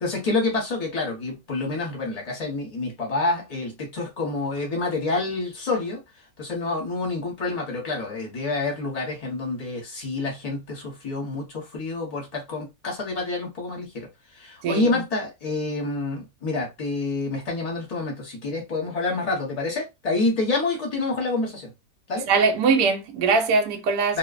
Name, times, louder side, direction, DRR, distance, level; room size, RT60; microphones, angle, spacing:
voice 1, 0.0-6.0 6.4-14.1 14.3-21.7 22.1-22.3 24.1-24.2, left 3 dB, 30° left, 0.8 m, -28 dB
voice 2, 14.6-15.0 22.3-24.2, right 4 dB, 75° right, 1.1 m, -21 dB
2.9 x 2.0 x 2.4 m
omnidirectional pair, 1.8 m